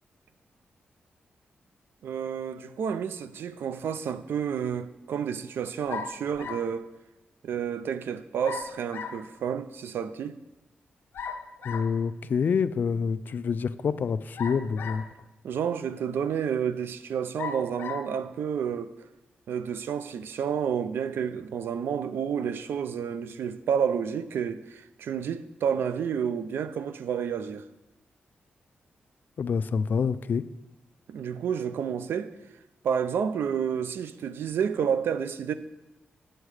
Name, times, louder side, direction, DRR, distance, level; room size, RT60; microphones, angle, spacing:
voice 1, 2.0-6.9 7.4-10.4 15.4-18.9 19.5-27.6 31.1-32.3 32.8-35.5, right 7 dB, 90° right, 0.5 m, -30 dB
sound 1, 5.9-6.7 8.4-9.3 11.1-12.0 14.4-15.2 16.0-16.1 17.4-18.1, left 5 dB, 90° left, 0.7 m, -37 dB
voice 2, 11.6-15.0 29.4-30.4, left 6 dB, 55° left, 0.4 m, -27 dB
8.1 x 7.8 x 4.8 m
wide cardioid pair, 105°, 4 cm